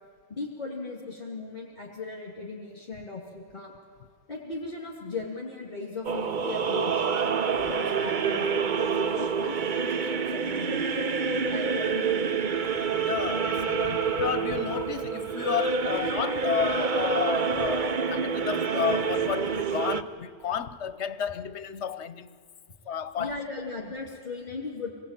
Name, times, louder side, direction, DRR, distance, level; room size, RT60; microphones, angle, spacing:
voice 1, 0.3-3.7 4.3-7.1 7.7-11.0 11.5-12.3 13.5-13.7 14.6-14.7 23.1-24.9, left 3 dB, 40° left, 2.9 m, -38 dB
sound 1, 6.0-20.0, right 5 dB, 45° right, 0.9 m, -27 dB
voice 2, 13.0-22.4 22.9-23.4, left 8 dB, 75° left, 1.1 m, -32 dB
26.5 x 19.0 x 9.0 m
omnidirectional pair, 1.2 m